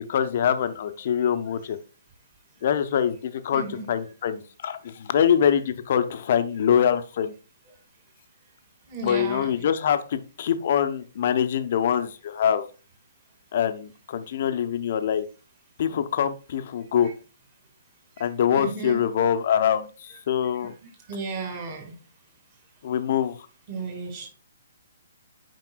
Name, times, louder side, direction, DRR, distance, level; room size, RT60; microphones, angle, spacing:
voice 1, 0.0-1.8 2.6-7.3 9.0-12.7 13.5-15.3 15.8-17.1 18.2-20.7 22.8-23.3, left 8 dB, 50° left, 10 dB, 0.7 m, -24 dB
voice 2, 3.5-3.8 8.9-9.5 18.5-19.0 21.1-21.9 23.7-24.3, right 4 dB, 35° right, 2 dB, 2.4 m, -33 dB
9.1 x 5.2 x 2.3 m, 0.34 s
figure-of-eight pair, 130°, 0 cm